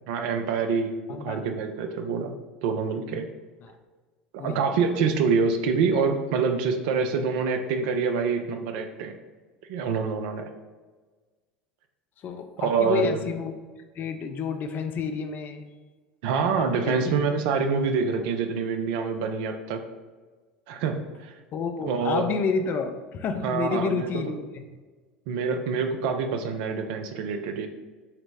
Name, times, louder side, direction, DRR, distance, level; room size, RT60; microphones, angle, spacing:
voice 1, 0.1-2.4 2.6-3.3 4.3-9.1 9.7-10.5 12.6-13.1 16.2-19.8 20.7-21.3 21.9-22.3 23.4-24.4 25.3-27.7, right 5 dB, 60° right, 6 dB, 0.4 m, -26 dB
voice 2, 1.1-1.4 3.6-3.7 4.4-4.6 12.2-13.5 14.0-15.7 16.8-17.0 21.5-24.6, left 5 dB, 40° left, 7 dB, 0.4 m, -30 dB
5.6 x 2.0 x 3.3 m, 1.4 s
figure-of-eight pair, 75°, 5 cm